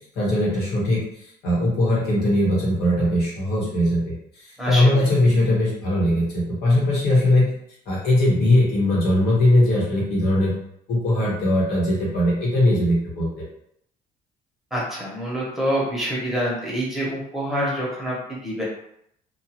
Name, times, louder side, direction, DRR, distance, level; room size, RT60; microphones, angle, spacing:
voice 1, 0.1-1.0 1.4-7.5 7.9-10.5 10.9-13.3, left 1 dB, 75° left, -5 dB, 1.3 m, -20 dB
voice 2, 4.6-5.1 14.7-18.6, equal, ahead, -5 dB, 1.0 m, -26 dB
2.6 x 2.5 x 2.9 m, 0.71 s
cardioid pair, 110°, 17 cm